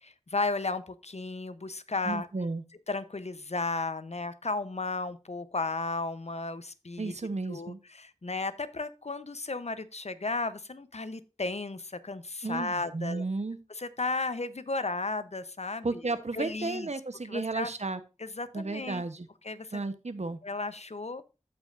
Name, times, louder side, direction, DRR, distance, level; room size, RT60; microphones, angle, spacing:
voice 1, 0.0-2.3 2.9-7.1 7.5-13.2 13.8-15.9 16.3-16.9 17.3-17.7 18.2-19.0 19.4-19.8 20.4-21.2, left 3 dB, 65° left, 13 dB, 0.8 m, -34 dB
voice 2, 2.0-2.6 7.0-7.8 12.4-13.6 15.8-18.0 18.5-19.3 19.7-20.4, right 3 dB, 70° right, 11 dB, 0.9 m, -33 dB
15.0 x 5.2 x 2.5 m, 0.30 s
wide cardioid pair, 40°, 12 cm